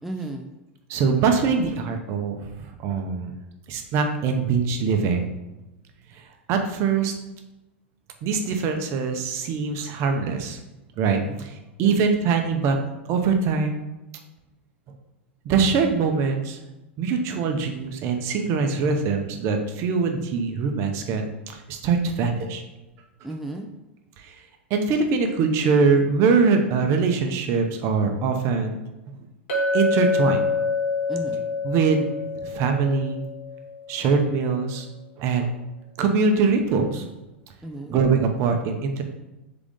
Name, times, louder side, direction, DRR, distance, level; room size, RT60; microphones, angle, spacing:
voice 1, 0.0-0.5 11.1-11.5 11.8-12.0 23.2-23.7 31.1-31.4 37.6-38.0, right 2 dB, ahead, 2 dB, 0.4 m, -34 dB
voice 2, 0.9-3.3 3.7-5.3 6.1-6.2 6.5-7.1 8.2-10.6 11.0-12.8 13.1-13.8 15.4-16.6 17.0-22.6 24.2-24.4 24.7-28.8 29.7-30.4 31.6-32.1 32.4-33.2 33.9-34.9 35.2-35.5 36.0-37.0 37.9-39.0, right 5 dB, 45° right, 5 dB, 0.7 m, -23 dB
Chink clink, 29.5-33.9, left 3 dB, 65° left, 1.5 m, -26 dB
3.8 x 3.6 x 3.6 m, 1.0 s
hypercardioid pair, 95°, 7 cm